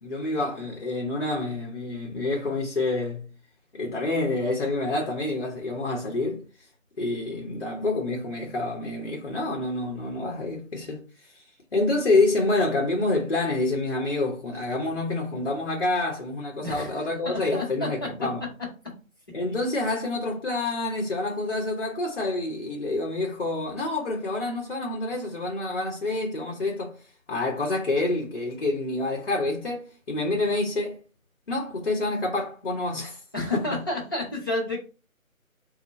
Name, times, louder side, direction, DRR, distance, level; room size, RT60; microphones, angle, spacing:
voice 1, 0.0-3.3 3.8-6.4 7.0-11.0 11.3-11.4 11.7-18.4 19.3-27.0 27.3-31.0 31.5-33.7, left 2 dB, 45° left, 0.8 m, -27 dB
voice 2, 16.6-17.9 33.3-34.8, left 2 dB, 15° left, 0.8 m, -30 dB
4.2 x 2.1 x 4.1 m
figure-of-eight pair, 150°, 42 cm